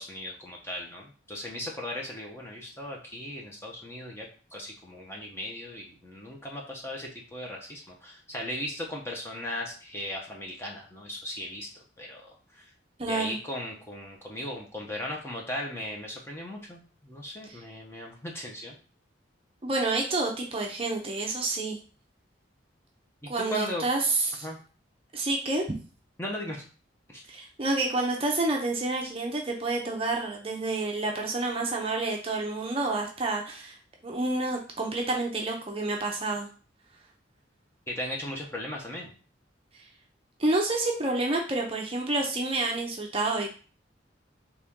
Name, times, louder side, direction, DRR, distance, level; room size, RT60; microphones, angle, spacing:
voice 1, 0.0-4.3 4.5-12.6 13.1-18.8 23.2-23.9 24.4-24.6 26.2-26.6 27.1-27.2 37.9-39.1, left 1 dB, 15° left, -1 dB, 0.8 m, -37 dB
voice 2, 13.0-13.4 17.5-17.6 19.6-21.8 23.3-24.5 25.1-25.6 27.3-33.8 34.0-36.5 39.8-39.9 40.4-43.5, right 2 dB, 30° right, 1 dB, 0.6 m, -29 dB
4.1 x 3.0 x 3.6 m, 0.38 s
head